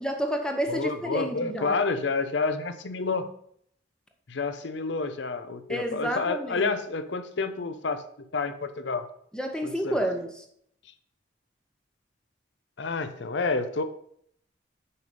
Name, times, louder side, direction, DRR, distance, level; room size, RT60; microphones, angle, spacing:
voice 1, 0.0-1.8 5.7-6.7 9.3-10.3, equal, 5° left, 5 dB, 0.7 m, -30 dB
voice 2, 0.7-3.3 4.3-8.0 8.3-9.1 9.6-10.0 12.8-13.8, left 4 dB, 70° left, 11 dB, 0.6 m, -29 dB
6.9 x 5.1 x 5.3 m, 0.68 s
head